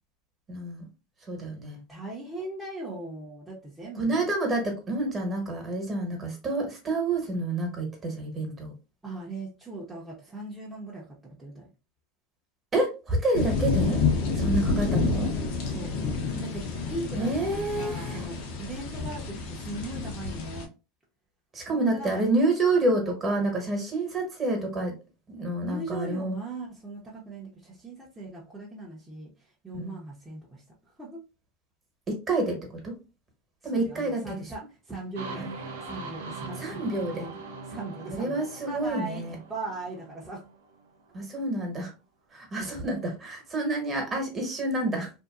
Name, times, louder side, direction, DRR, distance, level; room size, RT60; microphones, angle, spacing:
voice 1, 0.5-0.8 1.3-1.8 4.0-8.7 12.7-14.0 14.4-15.3 17.1-18.3 21.5-24.9 25.3-26.4 29.7-29.9 32.1-32.9 33.6-34.5 35.3-35.5 36.6-37.3 38.1-39.4 41.1-41.9 42.3-45.1, right 2 dB, 25° right, 2 dB, 1.2 m, -28 dB
voice 2, 1.9-4.3 9.0-11.7 14.7-14.9 15.6-16.0 16.4-20.7 21.7-22.3 25.6-30.6 31.0-31.2 33.7-36.8 37.1-37.4 37.6-40.4 42.6-42.9 44.0-44.1, right 2 dB, 10° right, -6 dB, 0.8 m, -39 dB
sound 1, 13.3-20.7, left 4 dB, 65° left, 0.8 m, -29 dB
sound 2, 35.2-40.9, right 3 dB, 85° right, 0.6 m, -41 dB
2.7 x 2.2 x 2.4 m, 0.30 s
supercardioid pair, 110°, 0 cm